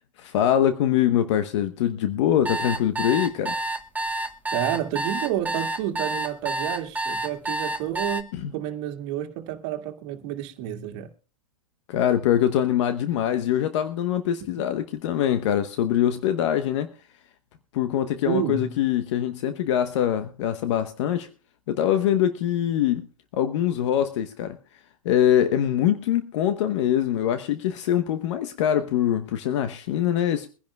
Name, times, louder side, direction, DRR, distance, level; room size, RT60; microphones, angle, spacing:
voice 1, 0.2-3.6 8.3-8.5 11.9-16.9 17.7-21.3 21.7-23.0 23.3-24.6 25.0-30.5, left 10 dB, 60° left, 1.0 m, -23 dB
sound 1, 2.4-8.2, right 2 dB, 10° right, 1.1 m, -28 dB
voice 2, 4.5-8.3 8.5-11.1 18.2-18.7, right 11 dB, 45° right, 1.9 m, -30 dB
23.0 x 10.5 x 2.3 m
hypercardioid pair, 115°, 17 cm